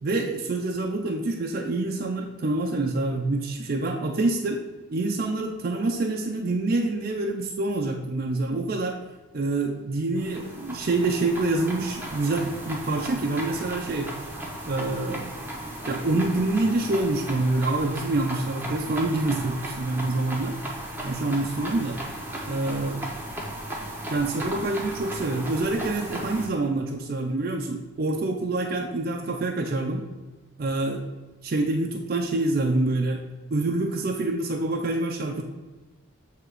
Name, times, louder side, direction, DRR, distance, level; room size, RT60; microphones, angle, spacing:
voice 1, 0.0-4.6 4.9-9.0 9.3-14.1 14.7-15.3 15.9-20.6 21.0-22.0 22.5-23.0 24.1-30.1 30.6-31.0 31.4-33.2 33.5-35.4, right 2 dB, 45° right, 2 dB, 0.4 m, -26 dB
sound 1, 10.2-26.5, right 1 dB, 10° right, 0.7 m, -36 dB
7.6 x 2.8 x 4.7 m, 1.2 s
head